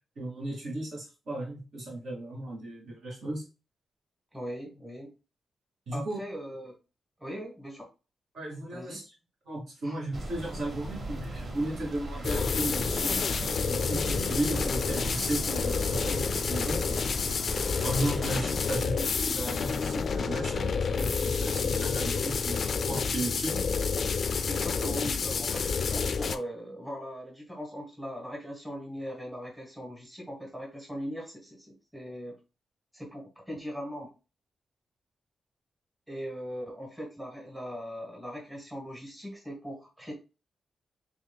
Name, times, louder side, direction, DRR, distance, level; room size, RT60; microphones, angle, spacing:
voice 1, 0.2-3.4 5.9-6.2 8.3-9.1 9.5-16.8 17.8-23.6, right 1 dB, 70° right, -2 dB, 2.4 m, -35 dB
voice 2, 4.3-5.1 5.9-6.7 7.2-7.9 8.7-9.0 9.8-10.0 24.5-25.6 25.9-32.4 32.9-34.1 36.1-40.1, equal, 5° right, -1 dB, 1.1 m, -39 dB
sound 1, 10.1-18.5, right 1 dB, 40° right, 0.7 m, -38 dB
sound 2, 12.2-26.4, left 5 dB, 45° left, 0.3 m, -29 dB
6.3 x 3.2 x 2.2 m, 0.31 s
wide cardioid pair, 165°, 0 cm